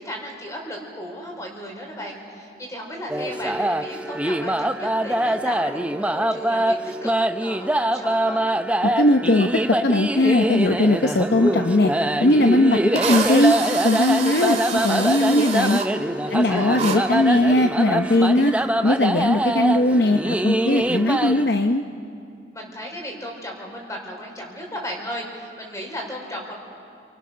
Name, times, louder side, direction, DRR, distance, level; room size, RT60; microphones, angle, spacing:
voice 1, 0.0-7.1 7.4-8.5 16.2-16.8 22.5-26.5, equal, 20° left, 0 dB, 4.6 m, -35 dB
sound 1, 3.1-21.5, right 1 dB, 5° right, 0.5 m, -24 dB
voice 2, 8.8-11.9 12.2-13.6 13.8-15.8 16.3-21.8, left 1 dB, 60° left, 5 dB, 0.8 m, -19 dB
Drill, 12.3-12.4 12.9-15.9 16.7-17.0, right 6 dB, 40° right, 2.4 m, -28 dB
29.0 x 24.5 x 6.3 m, 2.4 s
head